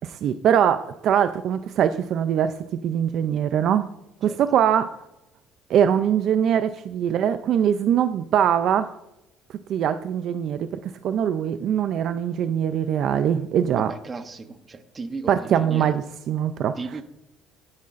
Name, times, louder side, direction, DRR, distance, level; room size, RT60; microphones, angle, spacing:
voice 1, 0.0-3.9 4.2-5.0 5.7-9.0 9.7-13.9 15.3-16.8, right 9 dB, 50° right, 11 dB, 0.4 m, -22 dB
voice 2, 4.2-4.6 13.8-15.9 16.8-17.0, right 4 dB, 25° right, 9 dB, 0.8 m, -36 dB
12.5 x 9.5 x 2.5 m, 0.89 s
cardioid pair, 140°, 0 cm